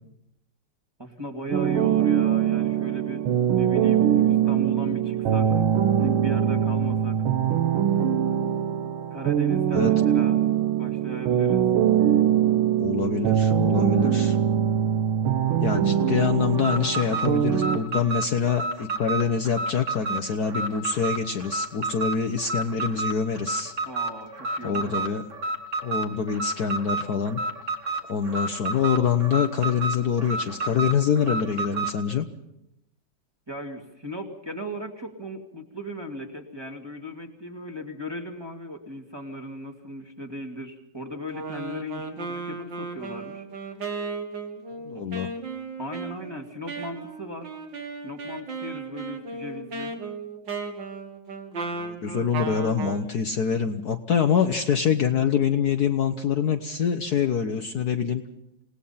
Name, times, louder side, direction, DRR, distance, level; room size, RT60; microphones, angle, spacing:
voice 1, 1.0-3.2 3.5-5.5 6.0-7.2 9.1-10.4 10.8-11.6 23.8-25.1 33.5-43.5 44.9-45.0 45.8-47.5 48.0-49.9, equal, 10° right, 1 dB, 2.0 m, -37 dB
sound 1, 1.5-17.8, right 9 dB, 90° right, 1.9 m, -22 dB
voice 2, 12.8-14.4 15.6-23.7 24.6-25.2 25.8-27.4 28.1-32.3 44.9-45.3 51.7-58.2, left 7 dB, 55° left, 6 dB, 1.4 m, -25 dB
Alarm, 16.5-32.0, right 3 dB, 40° right, 1.8 m, -30 dB
Wind instrument woodwind instrument, 41.3-53.1, right 4 dB, 60° right, 2.6 m, -35 dB
28.5 x 18.5 x 5.7 m, 0.83 s
omnidirectional pair, 2.2 m